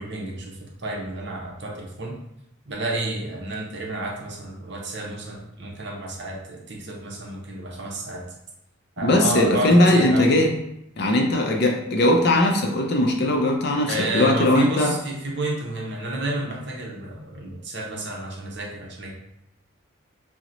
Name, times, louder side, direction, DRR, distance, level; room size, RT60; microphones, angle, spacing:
voice 1, 0.0-2.2 2.7-8.2 9.0-10.4 13.9-19.1, right 1 dB, 55° right, -2 dB, 0.7 m, -30 dB
voice 2, 9.0-10.5 11.0-14.9, left 1 dB, 50° left, 2 dB, 0.4 m, -19 dB
2.9 x 2.1 x 3.8 m, 0.80 s
head